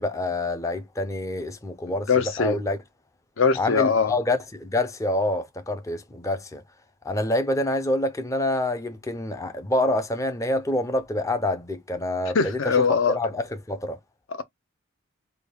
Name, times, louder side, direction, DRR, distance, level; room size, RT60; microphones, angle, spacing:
voice 1, 0.0-2.8 3.6-6.6 7.0-12.8 13.1-14.0, left 1 dB, 15° left, 0.4 m, -27 dB
voice 2, 2.1-2.6 3.4-4.1 12.3-13.2, left 5 dB, 65° left, 0.6 m, -21 dB
3.3 x 2.3 x 3.5 m
head